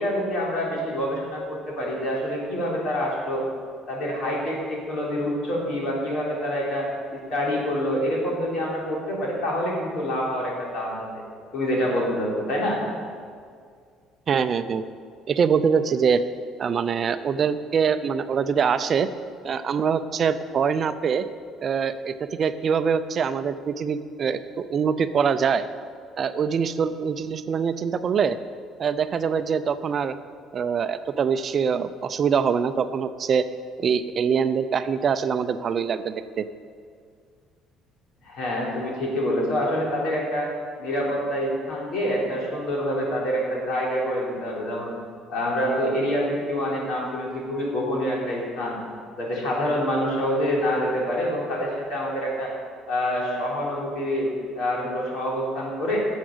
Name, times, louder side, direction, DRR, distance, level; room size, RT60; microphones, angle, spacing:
voice 1, 0.0-3.5 3.9-6.9 7.1-11.1 11.5-12.8 38.2-40.5 40.8-44.9 45.3-48.8 49.2-52.5 52.9-54.3 54.5-56.0, equal, 60° left, -3 dB, 3.7 m, -26 dB
voice 2, 14.3-14.8 15.3-16.2 16.6-19.1 19.4-21.2 21.6-25.7 26.2-28.4 28.8-30.1 30.5-33.4 33.8-36.4, right 6 dB, 35° right, 12 dB, 0.5 m, -24 dB
11.5 x 7.3 x 7.9 m, 2.1 s
cardioid pair, 155°, 0 cm